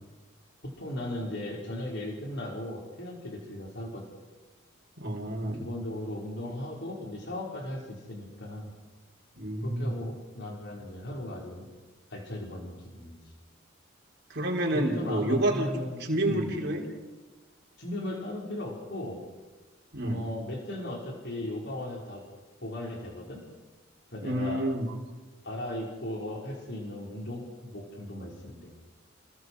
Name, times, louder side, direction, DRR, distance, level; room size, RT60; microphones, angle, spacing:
voice 1, 0.6-4.0 5.6-8.7 9.6-11.7 12.1-13.1 14.7-16.6 17.8-19.2 20.0-22.2 22.6-23.4 24.1-24.7 25.4-28.7, left 1 dB, 60° left, -2 dB, 5.4 m, -37 dB
voice 2, 5.0-5.6 9.4-9.9 14.3-15.7 16.1-16.8 19.9-20.2 24.2-24.9, right 1 dB, 55° right, -1 dB, 4.3 m, -28 dB
30.0 x 21.5 x 5.0 m, 1.2 s
head